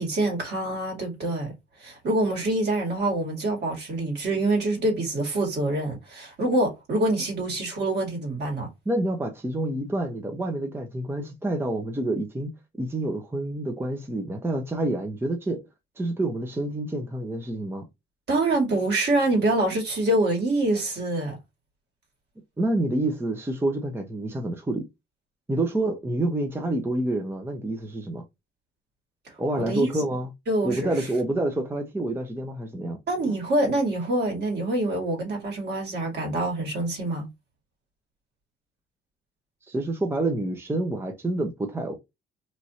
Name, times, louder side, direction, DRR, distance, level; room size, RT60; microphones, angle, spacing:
voice 1, 0.0-1.5 1.8-8.7 18.3-21.4 29.6-29.9 30.5-31.0 33.1-37.3, right 2 dB, 60° right, 1.9 m, -25 dB
voice 2, 8.9-15.6 16.0-17.9 22.6-24.9 25.5-28.2 29.4-30.3 30.6-33.0 39.7-42.0, right 1 dB, 10° right, 0.6 m, -28 dB
3.1 x 2.5 x 2.7 m
cardioid pair, 90°, 20 cm